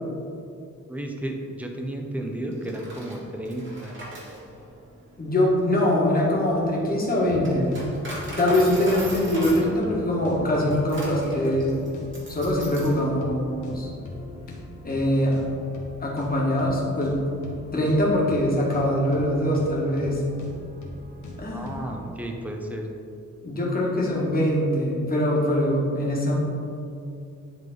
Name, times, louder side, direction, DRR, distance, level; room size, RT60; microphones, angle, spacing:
voice 1, 0.9-4.0 21.5-22.9, right 1 dB, 5° right, 2 dB, 0.6 m, -33 dB
Coin (dropping), 2.5-13.0, right 1 dB, 40° right, 1.7 m, -38 dB
voice 2, 5.2-7.7 8.4-11.8 12.3-13.9 14.8-15.4 16.0-17.2 17.7-20.2 21.4-21.8 23.4-26.4, left 1 dB, 30° left, -4 dB, 1.5 m, -23 dB
sound 1, 7.2-22.1, left 2 dB, 75° left, 1.3 m, -41 dB
10.5 x 3.7 x 3.8 m, 2.6 s
wide cardioid pair, 140°, 30 cm